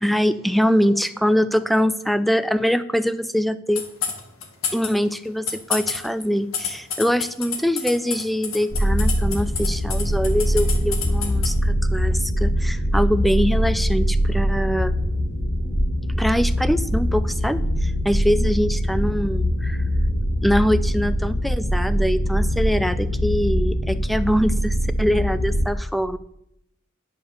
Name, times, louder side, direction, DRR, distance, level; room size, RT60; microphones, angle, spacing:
voice 1, 0.0-3.8 4.7-14.9 16.2-19.8 20.4-26.2, equal, ahead, 14 dB, 0.4 m, -23 dB
sound 1, 3.7-4.9 5.2-11.5, left 7 dB, 85° left, 1.7 m, -27 dB
sound 2, 8.7-25.7, equal, 70° left, 1.5 m, -22 dB
9.5 x 5.5 x 6.7 m, 0.78 s
head